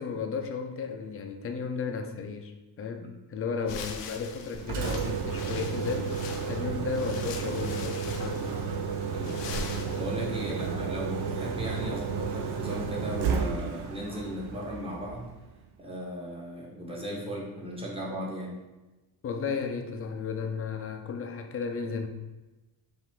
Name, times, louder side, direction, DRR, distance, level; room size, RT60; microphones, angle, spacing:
voice 1, 0.0-6.2 6.5-8.5 10.5-10.6 19.2-22.1, left 5 dB, 35° left, 5 dB, 0.4 m, -34 dB
sound 1, 3.6-10.5, left 5 dB, 90° left, 0.7 m, -42 dB
Engine, 4.5-15.5, right 5 dB, 65° right, 0.6 m, -32 dB
voice 2, 9.2-15.3 15.8-18.5, equal, 15° right, -4 dB, 0.9 m, -37 dB
5.6 x 2.6 x 3.5 m, 1.1 s
cardioid pair, 155°, 42 cm